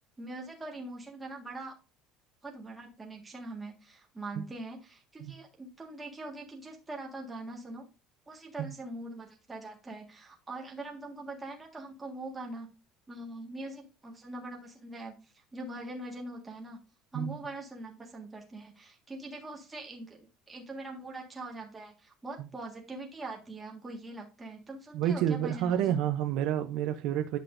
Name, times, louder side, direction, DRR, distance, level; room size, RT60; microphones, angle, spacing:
voice 1, 0.2-1.7 2.4-7.9 8.3-12.7 13.1-16.8 17.1-20.2 20.5-26.0, right 2 dB, 10° right, 1.6 m, -42 dB
voice 2, 24.9-27.4, right 10 dB, 55° right, 0.6 m, -29 dB
10.0 x 5.9 x 2.6 m
cardioid pair, 180°, 0 cm